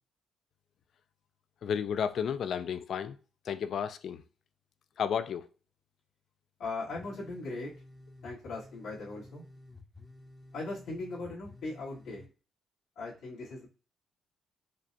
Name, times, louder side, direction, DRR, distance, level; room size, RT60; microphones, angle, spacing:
voice 1, 1.6-3.2 3.5-4.2 5.0-5.5, left 7 dB, 60° left, 0.3 m, -32 dB
voice 2, 6.6-7.7 8.2-9.4 10.5-12.2 13.0-13.7, left 3 dB, 90° left, 1.9 m, -39 dB
sound 1, 6.9-12.3, left 2 dB, 15° left, 0.6 m, -53 dB
5.0 x 2.2 x 2.6 m
cardioid pair, 130°, 0 cm